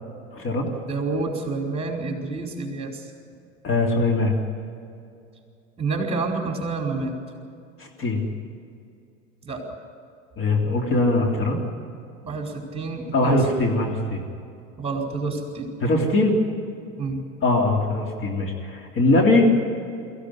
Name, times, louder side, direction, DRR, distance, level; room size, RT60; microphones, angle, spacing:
voice 1, 0.3-0.7 3.6-4.4 7.8-8.2 10.4-11.6 13.1-14.2 15.8-16.4 17.4-19.5, left 2 dB, 35° left, 1 dB, 3.4 m, -21 dB
voice 2, 0.9-3.1 5.8-7.2 9.4-9.6 12.2-13.4 14.8-15.7 17.0-17.2, right 3 dB, 15° right, 2 dB, 4.8 m, -28 dB
23.0 x 15.5 x 9.8 m, 2.4 s
figure-of-eight pair, 75°, 37 cm